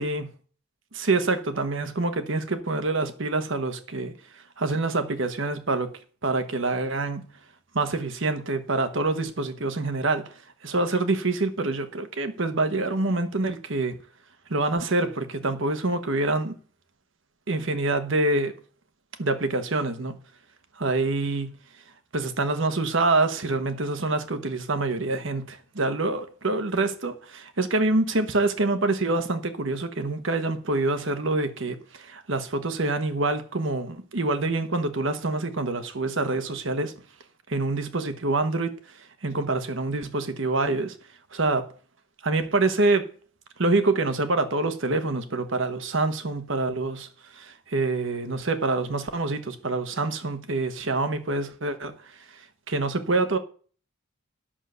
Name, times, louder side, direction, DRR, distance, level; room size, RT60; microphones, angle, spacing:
voice 1, 0.9-4.1 4.6-5.9 6.2-7.3 7.7-14.0 14.5-16.6 17.5-18.6 19.2-20.2 20.8-21.5 22.1-36.9 37.5-38.7 39.2-40.9 41.3-41.7 42.2-43.1 43.6-47.1 47.4-51.9 52.3-53.4, right 2 dB, 60° right, 1.1 m, -26 dB
10.0 x 6.4 x 6.8 m
head